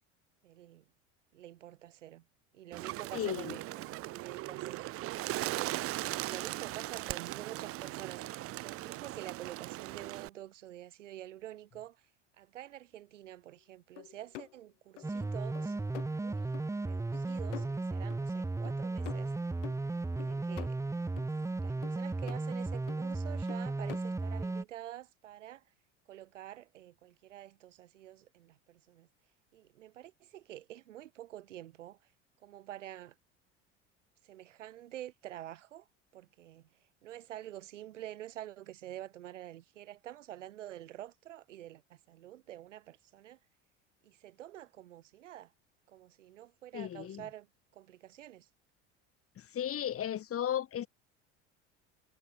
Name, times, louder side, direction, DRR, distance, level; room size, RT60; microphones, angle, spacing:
voice 1, 0.4-0.8 1.3-2.2 2.5-5.9 6.2-12.0 12.4-16.6 16.8-19.3 20.2-20.8 21.6-25.6 26.1-29.1 29.5-32.0 32.4-33.1 34.2-35.9 36.1-36.7 37.0-43.4 44.0-45.5 45.9-47.5 47.7-48.5, right 13 dB, 85° right, 3.1 m, -48 dB
Bird, 2.7-10.3, right 17 dB, 40° right, 0.5 m, -39 dB
voice 2, 3.1-3.6 46.7-47.2 49.5-50.9, left 10 dB, 40° left, 1.8 m, -34 dB
sound 1, 14.0-14.6 15.0-15.3 15.5-16.1 16.5-16.7 17.1-17.2 17.5-18.2 18.6-18.8 19.0-19.8 20.2-20.7 21.2-21.3 21.8-22.4 22.9-23.1 23.5-24.0, left 17 dB, 80° left, 3.7 m, -47 dB
sound 2, 15.0-24.6, right 2 dB, 10° right, 0.8 m, -35 dB
hypercardioid pair, 80°, 36 cm